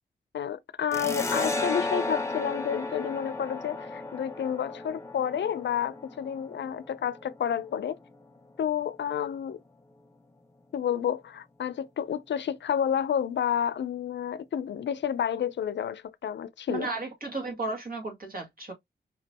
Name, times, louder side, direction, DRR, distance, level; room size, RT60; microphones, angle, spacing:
voice 1, 0.3-8.0 8.6-9.6 10.7-16.9, left 8 dB, 75° left, 0.5 m, -30 dB
sound 1, 0.9-8.1, left 2 dB, 15° left, 1.1 m, -34 dB
voice 2, 16.7-18.7, right 3 dB, 55° right, 1.9 m, -34 dB
4.9 x 3.0 x 2.8 m
cardioid pair, 65°, 18 cm